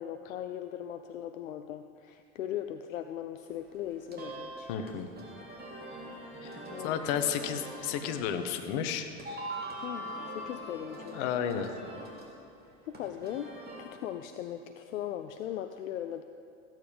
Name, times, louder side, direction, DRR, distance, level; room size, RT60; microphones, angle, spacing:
voice 1, 0.0-4.7 6.7-7.1 9.8-11.3 12.8-13.5 13.8-16.2, left 11 dB, 80° left, 8 dB, 0.7 m, -39 dB
sound 1, 3.4-13.8, right 1 dB, 25° right, 3.1 m, -43 dB
voice 2, 4.7-5.1 6.4-6.6 6.8-9.1 11.1-11.7, left 8 dB, 60° left, 8 dB, 1.3 m, -32 dB
15.0 x 9.2 x 5.2 m, 2.4 s
hypercardioid pair, 95°, 39 cm